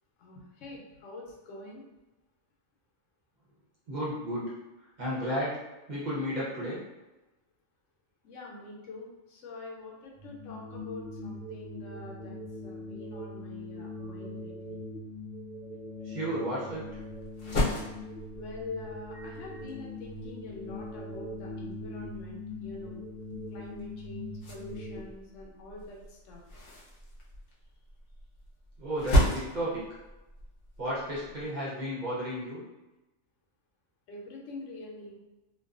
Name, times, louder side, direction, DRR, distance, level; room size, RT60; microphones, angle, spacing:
voice 1, 0.2-1.8 8.2-14.8 18.3-23.0 23.5-26.4 34.1-35.2, left 2 dB, 85° left, -1 dB, 1.0 m, -45 dB
voice 2, 3.9-6.8 16.0-17.0 28.8-29.8 30.8-32.6, equal, 45° right, -7 dB, 0.7 m, -33 dB
sound 1, 10.2-25.0, left 2 dB, 75° right, 0.9 m, -42 dB
sound 2, 16.7-31.5, left 1 dB, 60° left, 0.8 m, -35 dB
2.5 x 2.3 x 2.4 m, 1.0 s
omnidirectional pair, 1.2 m